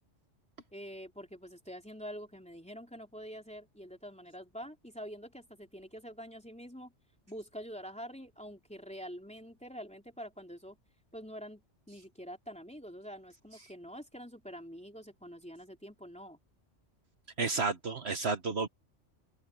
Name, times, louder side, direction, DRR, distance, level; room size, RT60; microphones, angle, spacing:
voice 1, 0.7-6.9 7.3-10.8 11.1-16.4, equal, 5° left, 3.4 m, -46 dB
voice 2, 17.4-18.7, right 4 dB, 60° right, 1.4 m, -31 dB
omnidirectional pair, 1.3 m